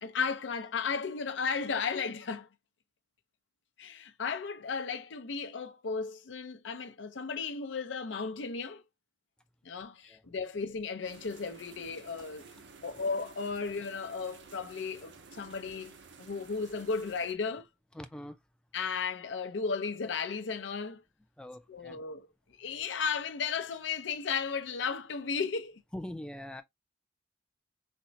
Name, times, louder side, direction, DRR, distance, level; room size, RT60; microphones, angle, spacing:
voice 1, 0.0-2.5 3.8-8.8 9.6-12.5 12.8-15.9 16.2-17.7 18.7-21.0 21.7-22.3 22.6-25.8, left 5 dB, 90° left, 0.6 m, -35 dB
sound 1, 11.0-17.3, right 4 dB, 80° right, 0.7 m, -53 dB
voice 2, 17.9-18.4 21.4-22.0 25.9-26.6, left 1 dB, 5° left, 0.3 m, -43 dB
4.2 x 2.1 x 2.6 m
head